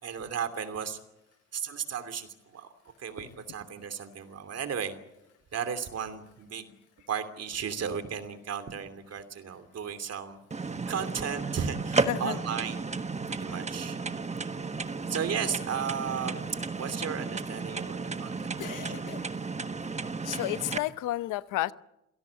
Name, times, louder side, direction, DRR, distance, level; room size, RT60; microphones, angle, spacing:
voice 1, 0.0-1.0 1.5-2.7 3.0-4.9 5.5-6.7 7.1-12.9 13.3-14.0 15.1-16.5 16.8-19.1, right 7 dB, 55° right, 10 dB, 2.9 m, -35 dB
sound 1, 10.5-20.8, right 4 dB, 20° right, 1.4 m, -33 dB
voice 2, 12.1-12.4 18.6-19.3 20.2-21.7, left 15 dB, 90° left, 15 dB, 0.9 m, -32 dB
27.5 x 17.5 x 8.4 m, 0.91 s
cardioid pair, 90°, 30 cm